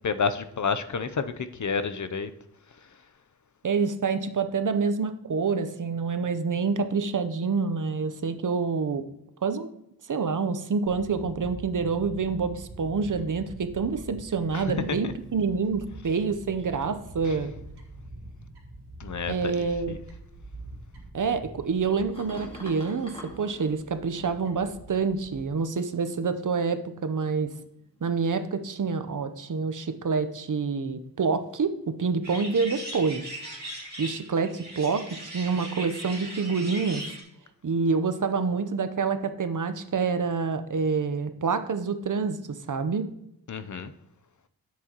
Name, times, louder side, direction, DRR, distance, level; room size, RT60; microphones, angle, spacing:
voice 1, 0.0-2.3 14.5-14.6 15.0-15.1 17.3-17.4 19.0-20.0 43.5-43.9, left 5 dB, 50° left, 11 dB, 0.6 m, -30 dB
voice 2, 3.6-9.1 9.4-9.7 10.1-17.5 19.3-20.0 21.1-27.5 28.0-33.2 34.0-37.0 37.6-43.1, right 5 dB, 50° right, 10 dB, 0.7 m, -27 dB
Fowl / Bird, 10.9-25.5, right 1 dB, 80° right, 1.9 m, -45 dB
sound 1, 21.6-24.9 25.8-26.9 27.6-28.1 32.3-32.4, equal, 15° left, 2.0 m, -46 dB
sound 2, 32.2-37.2, right 1 dB, 25° right, 3.2 m, -39 dB
10.5 x 7.5 x 2.9 m, 0.79 s
wide cardioid pair, 95°, 39 cm